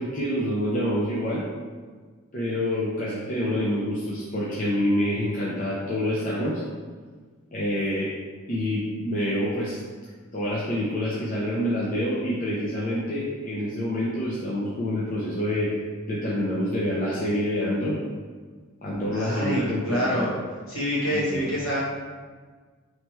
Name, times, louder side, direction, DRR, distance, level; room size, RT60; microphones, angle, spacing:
voice 1, 0.0-1.4 2.3-6.6 7.5-8.1 8.5-9.8 10.3-15.7 16.1-18.0 18.8-20.3 21.1-21.5, equal, 40° left, -7 dB, 0.6 m, -27 dB
voice 2, 19.1-20.3 20.7-21.8, equal, 65° left, -7 dB, 1.5 m, -26 dB
3.2 x 3.1 x 4.3 m, 1.5 s
head